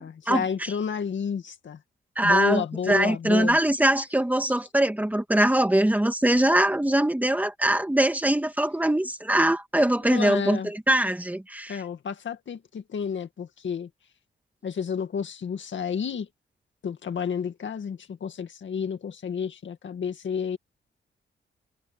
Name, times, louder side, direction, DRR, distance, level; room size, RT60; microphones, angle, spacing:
voice 1, 0.0-1.8 2.2-3.6 10.1-10.7 11.7-13.9 14.6-16.3 16.8-20.6, left 7 dB, 65° left, 2.1 m, -30 dB
voice 2, 2.2-2.6 2.9-11.8, right 1 dB, 5° right, 2.4 m, -22 dB
wide cardioid pair, 150°, 21 cm